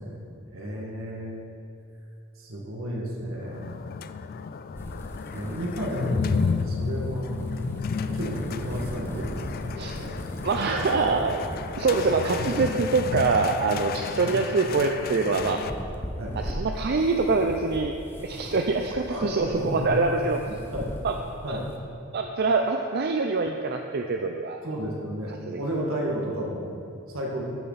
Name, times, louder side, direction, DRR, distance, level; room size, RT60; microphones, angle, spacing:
voice 1, 0.0-1.4 2.4-3.8 5.3-7.4 8.1-10.2 14.2-14.3 16.2-16.3 19.1-19.9 20.5-20.9 21.4-21.7 24.6-27.4, equal, 75° right, -2 dB, 1.9 m, -33 dB
sound 1, 3.4-15.7, left 5 dB, 45° left, 0.3 m, -32 dB
sound 2, 4.7-21.8, equal, 10° left, 0.8 m, -39 dB
voice 2, 10.4-11.5 11.8-15.6 16.3-18.0 18.2-20.4 21.0-21.2 21.5-21.6 22.1-24.6 25.5-25.6, right 4 dB, 50° right, 4 dB, 0.5 m, -25 dB
14.5 x 7.0 x 4.1 m, 2.5 s
head